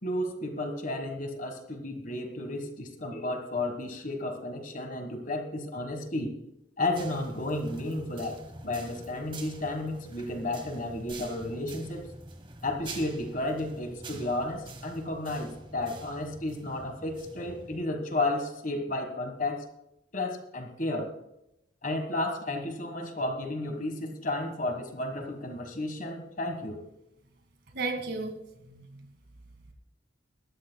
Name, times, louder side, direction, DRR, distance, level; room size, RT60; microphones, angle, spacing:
voice 1, 0.0-6.3 6.8-12.1 12.6-19.6 20.1-21.1 21.8-26.8, left 2 dB, 40° left, 5 dB, 1.6 m, -32 dB
sound 1, 6.9-17.8, right 2 dB, 25° right, 1.3 m, -46 dB
voice 2, 27.7-29.1, right 3 dB, 55° right, 5 dB, 2.0 m, -35 dB
20.0 x 13.5 x 2.3 m, 0.84 s
head